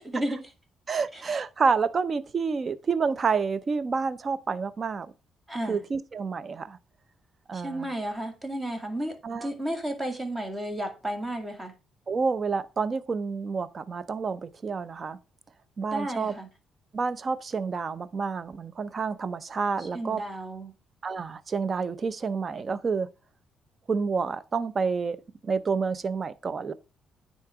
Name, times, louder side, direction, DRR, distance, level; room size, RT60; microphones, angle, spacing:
voice 1, 0.9-5.1 5.7-6.8 7.5-7.9 9.2-9.5 12.1-15.2 15.8-16.3 16.9-20.2 21.0-23.1 23.9-25.2 25.4-26.7, right 5 dB, 40° right, 0.7 m, -29 dB
voice 2, 5.5-5.8 7.5-11.7 15.9-16.5 19.8-20.7, right 1 dB, 20° right, 2.1 m, -33 dB
9.7 x 3.8 x 4.8 m
cardioid pair, 90°, 0 cm